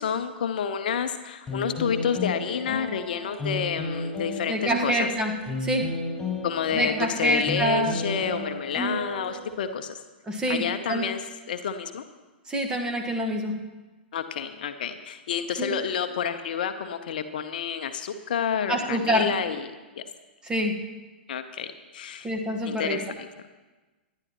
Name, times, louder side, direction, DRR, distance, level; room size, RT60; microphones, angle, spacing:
voice 1, 0.0-5.1 6.4-9.9 10.5-11.2 11.5-12.0 14.1-19.7 20.0-20.1 21.3-22.3 22.7-23.3, left 7 dB, 55° left, 9 dB, 0.8 m, -29 dB
sound 1, 1.5-9.6, left 2 dB, 5° left, 5.5 m, -33 dB
voice 2, 4.5-5.3 5.6-5.9 6.8-8.0 10.3-11.0 12.5-13.5 15.6-15.7 18.7-19.3 20.4-20.7 22.2-23.0, equal, 10° right, 2 dB, 1.5 m, -26 dB
25.0 x 11.0 x 3.0 m, 1.2 s
figure-of-eight pair, 105°, 6 cm